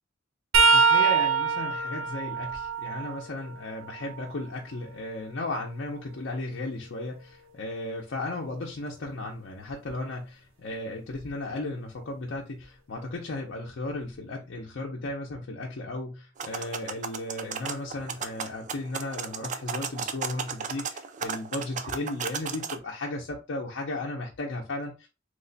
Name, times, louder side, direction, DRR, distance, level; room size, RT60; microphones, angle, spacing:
sound 1, 0.5-4.3 4.8-6.8 9.7-9.9 11.1-11.3 12.6-12.7, right 5 dB, 75° right, 0.6 m, -26 dB
voice 1, 0.7-25.1, left 2 dB, 65° left, 0.6 m, -35 dB
sound 2, 16.4-22.8, right 6 dB, 40° right, 0.3 m, -35 dB
3.1 x 2.1 x 3.9 m
head